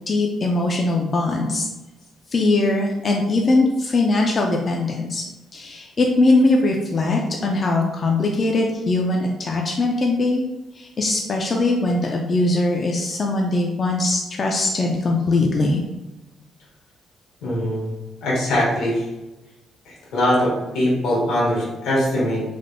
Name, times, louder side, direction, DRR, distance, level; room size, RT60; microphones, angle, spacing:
voice 1, 0.1-1.7 2.3-5.2 5.5-10.4 10.8-15.8, left 2 dB, 40° left, 0 dB, 0.3 m, -21 dB
voice 2, 17.4-17.9 18.2-19.1 19.8-22.4, left 1 dB, 85° left, -5 dB, 1.3 m, -22 dB
3.3 x 2.1 x 2.5 m, 1.1 s
cardioid pair, 90°, 0 cm